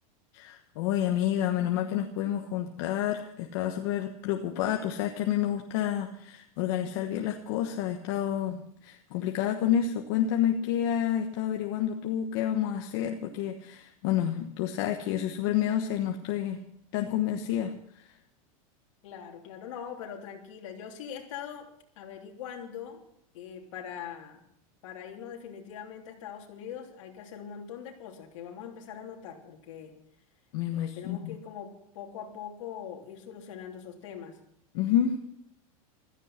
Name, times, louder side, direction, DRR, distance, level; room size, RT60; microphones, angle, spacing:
voice 1, 0.3-16.6 16.9-18.1 30.5-31.4 34.7-35.2, left 10 dB, 45° left, 4 dB, 1.2 m, -29 dB
voice 2, 19.0-23.0 23.3-24.4 24.8-29.9 30.7-34.4, left 8 dB, 60° left, 2 dB, 3.3 m, -42 dB
15.5 x 14.0 x 5.8 m, 0.73 s
supercardioid pair, 175°, 18 cm